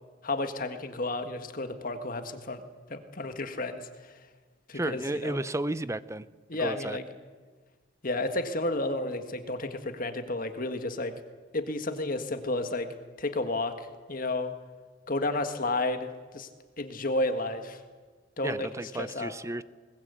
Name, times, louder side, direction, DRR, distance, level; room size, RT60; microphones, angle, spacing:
voice 1, 0.2-2.6 2.9-3.9 4.7-5.4 6.5-7.0 8.0-11.1 11.5-12.9 13.2-14.5 15.1-16.5 16.8-17.8 18.4-18.7 18.9-19.3, left 2 dB, 45° left, 8 dB, 1.7 m, -31 dB
voice 2, 4.7-6.3 6.6-7.0 18.4-19.6, right 2 dB, 15° right, 16 dB, 0.6 m, -33 dB
21.5 x 20.0 x 8.3 m, 1.4 s
head